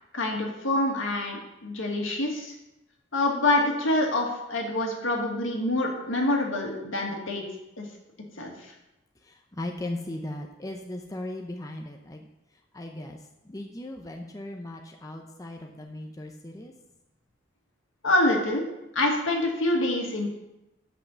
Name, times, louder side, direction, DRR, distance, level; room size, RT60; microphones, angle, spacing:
voice 1, 0.1-2.5 3.1-7.4 7.8-7.9 8.4-8.7 18.0-18.6 18.9-20.3, left 1 dB, 80° left, 0 dB, 1.9 m, -26 dB
voice 2, 9.2-12.3 12.7-13.2 13.4-16.7, left 1 dB, 15° left, 2 dB, 0.6 m, -37 dB
8.5 x 5.5 x 7.1 m, 0.92 s
head